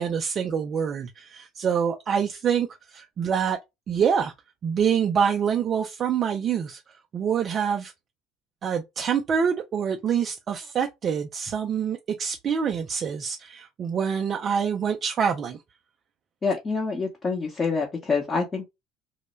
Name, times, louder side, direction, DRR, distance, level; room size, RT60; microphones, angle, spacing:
voice 1, 0.0-3.6 3.9-4.3 4.6-6.8 7.1-7.9 8.6-15.6, right 7 dB, 40° right, 0.3 m, -26 dB
voice 2, 16.4-18.7, left 4 dB, 25° left, 0.7 m, -26 dB
2.1 x 2.0 x 3.0 m
hypercardioid pair, 65°, 0 cm